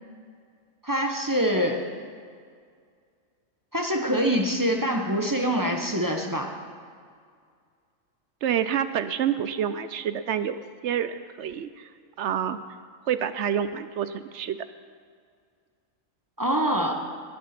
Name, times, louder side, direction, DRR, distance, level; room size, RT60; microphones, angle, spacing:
voice 1, 0.8-1.8 3.7-6.5 16.4-17.0, equal, 15° right, 3 dB, 0.9 m, -25 dB
voice 2, 8.4-11.9 12.2-12.6 13.1-14.6, right 9 dB, 70° right, 12 dB, 0.8 m, -28 dB
19.0 x 7.1 x 5.8 m, 2.1 s
omnidirectional pair, 1.4 m